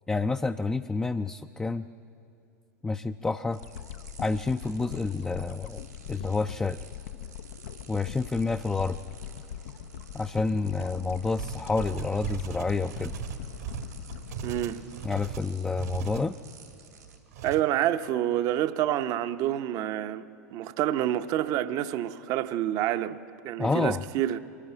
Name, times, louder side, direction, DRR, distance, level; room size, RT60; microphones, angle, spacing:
voice 1, 0.1-1.8 2.8-3.6 4.2-6.8 7.9-9.0 10.1-13.1 15.0-16.4 23.6-24.0, left 3 dB, 10° left, 0.4 m, -29 dB
sound 1, 3.5-17.2, right 6 dB, 85° right, 2.9 m, -51 dB
sound 2, 3.6-15.9 16.4-16.5, left 11 dB, 65° left, 0.5 m, -42 dB
sound 3, 11.4-16.3 17.3-17.6, right 8 dB, 70° right, 1.5 m, -38 dB
voice 2, 14.4-14.8 17.4-20.2 20.5-24.4, right 12 dB, 45° right, 0.7 m, -28 dB
23.0 x 13.5 x 8.9 m
figure-of-eight pair, 85°, 9 cm